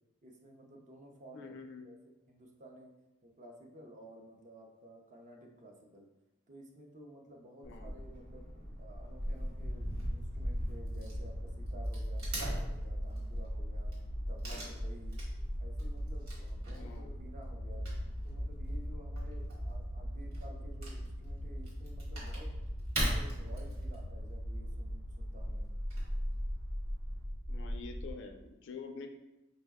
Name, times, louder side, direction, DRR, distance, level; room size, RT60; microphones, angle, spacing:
voice 1, 0.2-2.0 2.3-2.9 3.2-6.1 6.5-8.5 8.8-14.0 14.3-15.2 15.6-17.9 18.2-22.5 22.9-25.7, right 1 dB, 35° right, 1 dB, 0.5 m, -54 dB
voice 2, 1.3-1.9 7.6-7.9 16.7-17.1 27.5-29.1, left 4 dB, 55° left, 6 dB, 0.3 m, -46 dB
Wood / Tearing, 7.6-27.2, equal, 85° right, 1.5 m, -42 dB
sound 1, 9.8-28.1, equal, 60° right, 0.8 m, -39 dB
5.1 x 2.1 x 3.4 m, 0.97 s
head